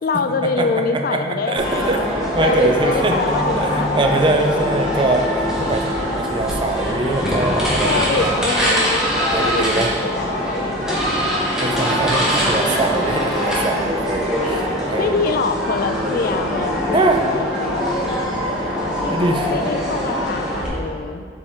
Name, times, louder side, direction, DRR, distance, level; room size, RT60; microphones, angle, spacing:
voice 1, 0.0-4.9 7.8-9.0 9.4-12.0 15.0-17.8 19.0-21.3, left 4 dB, 50° left, 9 dB, 0.3 m, -25 dB
voice 2, 1.5-5.3 5.6-8.3 8.7-9.0 9.3-9.9 11.6-15.2 16.9-17.2 19.1-19.5, right 2 dB, 25° right, 3 dB, 0.5 m, -22 dB
sound 1, 1.6-20.7, equal, 5° right, 1.4 m, -22 dB
7.3 x 4.8 x 4.3 m, 2.3 s
head